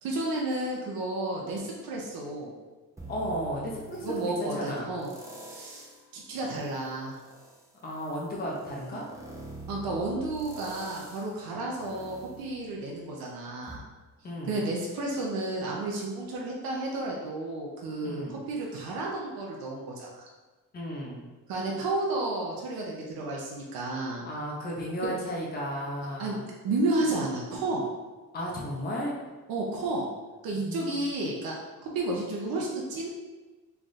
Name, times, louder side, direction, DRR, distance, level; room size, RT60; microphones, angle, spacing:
voice 1, 0.0-2.5 4.0-5.1 5.5-5.9 6.1-7.1 9.7-13.8 14.5-20.3 21.5-24.3 25.0-25.1 26.2-26.4 26.6-27.9 29.5-30.1 30.4-31.6 31.9-33.1, right 2 dB, 80° right, -2 dB, 0.7 m, -32 dB
sound 1, 3.0-4.4 5.0-6.1 6.5-13.2 13.7-13.8, right 3 dB, 10° right, 0.3 m, -46 dB
voice 2, 3.1-4.9 7.8-9.1 14.2-14.6 18.0-18.3 20.7-21.2 24.2-26.4 28.3-29.2 30.5-31.1, equal, 25° left, -3 dB, 0.6 m, -34 dB
3.3 x 2.4 x 4.0 m, 1.3 s
cardioid pair, 165°, 35 cm